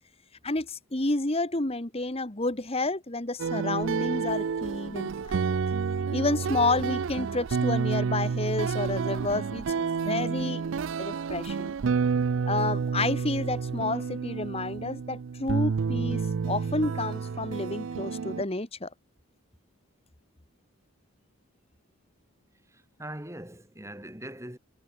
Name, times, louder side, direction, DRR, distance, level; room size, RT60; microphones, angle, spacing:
voice 1, 0.4-5.5 6.1-10.6 11.0-11.7 12.5-18.9, left 2 dB, 30° left, 1.5 m, -30 dB
sound 1, 3.4-18.4, right 5 dB, 60° right, 0.4 m, -29 dB
voice 2, 22.7-24.6, right 1 dB, 15° right, 4.2 m, -41 dB
head